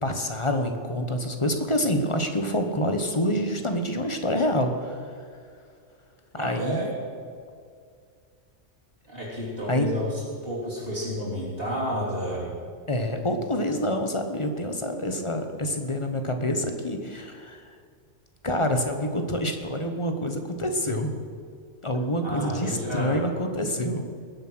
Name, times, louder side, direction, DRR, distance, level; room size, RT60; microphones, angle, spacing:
voice 1, 0.0-5.0 6.4-6.9 9.7-9.9 12.9-17.7 18.4-21.2 21.8-24.0, left 1 dB, 25° left, 5 dB, 1.1 m, -27 dB
voice 2, 6.3-6.9 9.1-12.5 22.2-23.3, equal, 50° right, -7 dB, 3.5 m, -31 dB
20.0 x 7.4 x 6.2 m, 2.2 s
omnidirectional pair, 1.3 m